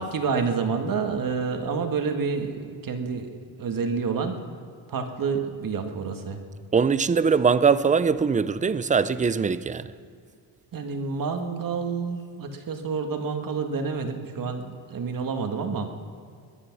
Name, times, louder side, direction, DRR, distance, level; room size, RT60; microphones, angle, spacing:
voice 1, 0.0-3.3 3.6-4.4 4.9-6.4 10.7-15.9, right 5 dB, 45° right, 1.8 m, -28 dB
voice 2, 6.7-9.9, right 5 dB, 15° right, 0.5 m, -22 dB
21.5 x 10.0 x 6.1 m
cardioid pair, 90°, 45 cm